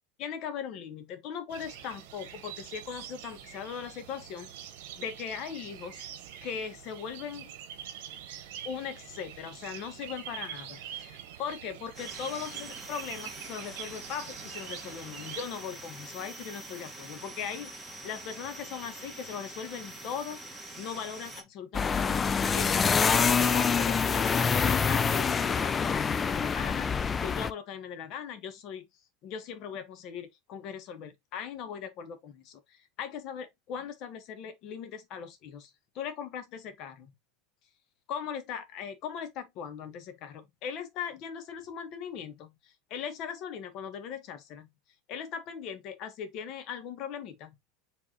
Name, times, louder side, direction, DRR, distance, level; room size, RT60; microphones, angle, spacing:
voice 1, 0.2-4.5 5.0-6.0 6.4-7.5 8.6-20.4 20.7-28.8 29.2-35.7 35.9-37.1 38.1-44.7 45.1-47.6, left 7 dB, 55° left, 1.2 m, -39 dB
sound 1, 1.5-15.4, right 10 dB, 70° right, 1.0 m, -45 dB
sound 2, 11.9-21.4, right 2 dB, ahead, 1.9 m, -45 dB
sound 3, 21.7-27.5, left 6 dB, 25° left, 0.4 m, -26 dB
4.9 x 3.5 x 2.9 m
hypercardioid pair, 105°, 0 cm